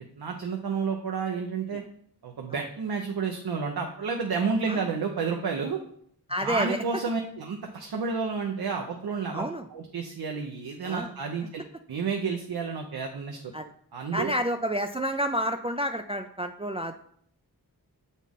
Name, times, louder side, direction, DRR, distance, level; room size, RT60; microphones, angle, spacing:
voice 1, 0.2-1.8 2.2-5.8 6.4-11.6 11.9-13.5 13.9-14.3, right 5 dB, 80° right, 2 dB, 0.7 m, -30 dB
voice 2, 6.3-6.8 9.3-9.7 10.8-11.1 13.5-13.7 14.1-16.9, equal, 15° right, 5 dB, 0.4 m, -29 dB
7.2 x 4.1 x 3.5 m, 0.65 s
cardioid pair, 55°, 37 cm